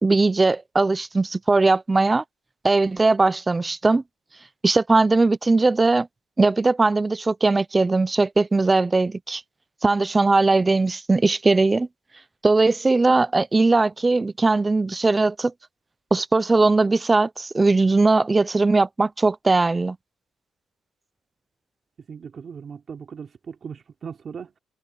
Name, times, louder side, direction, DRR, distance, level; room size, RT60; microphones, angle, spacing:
voice 1, 0.0-2.2 2.6-4.0 4.6-6.1 6.4-9.4 9.8-11.9 12.4-15.5 16.1-20.0, right 3 dB, 15° right, 0.4 m, -19 dB
voice 2, 22.1-24.6, right 6 dB, 35° right, 4.2 m, -38 dB
cardioid pair, 150°, 0 cm